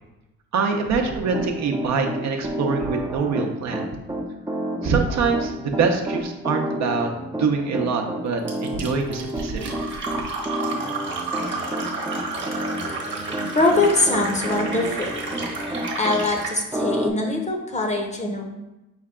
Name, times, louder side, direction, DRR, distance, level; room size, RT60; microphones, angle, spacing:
voice 1, 0.5-3.8 4.8-7.1 7.4-9.7, right 5 dB, 65° right, 3 dB, 0.7 m, -24 dB
Piano, 1.1-16.2 16.7-17.1, right 1 dB, 10° right, 0.4 m, -30 dB
Fill (with liquid), 8.5-16.6, right 3 dB, 40° right, 1.1 m, -31 dB
voice 2, 13.5-15.1 16.0-18.4, left 2 dB, 25° left, 2 dB, 0.7 m, -22 dB
5.5 x 2.2 x 3.6 m, 0.98 s
cardioid pair, 90°, 30 cm